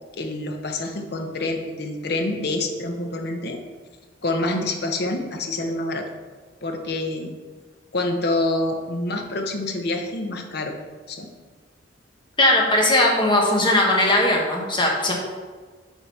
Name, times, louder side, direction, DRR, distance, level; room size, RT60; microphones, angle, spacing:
voice 1, 0.1-3.6 4.2-6.1 6.6-7.3 7.9-10.8 11.1-11.3, left 2 dB, 55° left, 4 dB, 0.9 m, -27 dB
voice 2, 12.4-15.1, left 1 dB, 25° left, -1 dB, 1.2 m, -19 dB
7.3 x 3.9 x 5.6 m, 1.5 s
head